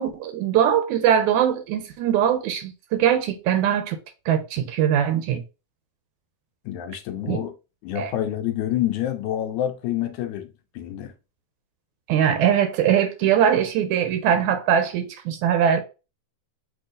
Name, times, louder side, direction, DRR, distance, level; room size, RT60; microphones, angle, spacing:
voice 1, 0.0-4.0 4.3-5.4 7.2-7.4 8.0-8.1 12.1-15.8, right 9 dB, 80° right, 1.8 m, -21 dB
voice 2, 6.7-7.5 7.8-11.1, left 12 dB, 80° left, 1.9 m, -27 dB
6.1 x 2.7 x 2.5 m
omnidirectional pair, 3.6 m